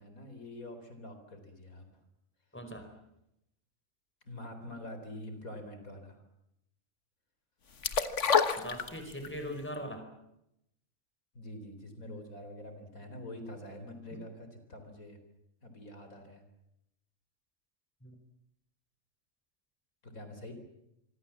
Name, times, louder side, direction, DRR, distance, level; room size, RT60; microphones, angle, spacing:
voice 1, 0.0-1.9 4.2-6.2 11.3-15.2 15.6-16.4 20.0-20.5, left 1 dB, 80° left, 7 dB, 4.5 m, -46 dB
voice 2, 2.5-2.9 8.6-10.1 14.1-14.2 18.0-18.2, equal, 10° left, 6 dB, 4.7 m, -41 dB
sound 1, 7.8-9.4 9.7-9.8, left 6 dB, 60° left, 1.7 m, -27 dB
26.5 x 24.5 x 7.4 m, 0.83 s
omnidirectional pair, 1.4 m